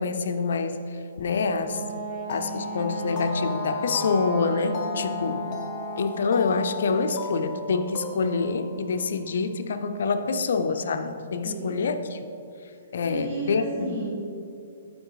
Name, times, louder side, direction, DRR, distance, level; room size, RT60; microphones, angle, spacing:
voice 1, 0.0-1.8 2.3-5.5 6.0-12.2 12.9-14.0, left 4 dB, 65° left, 9 dB, 0.5 m, -26 dB
Wind instrument woodwind instrument, 1.3-6.3, right 1 dB, 10° right, 1.0 m, -34 dB
sound 1, 2.3-9.7, left 4 dB, 25° left, 0.7 m, -37 dB
voice 2, 11.4-11.9 13.0-14.2, right 1 dB, 35° right, -10 dB, 2.0 m, -33 dB
11.0 x 4.8 x 3.9 m, 2.6 s
hypercardioid pair, 170°, 0 cm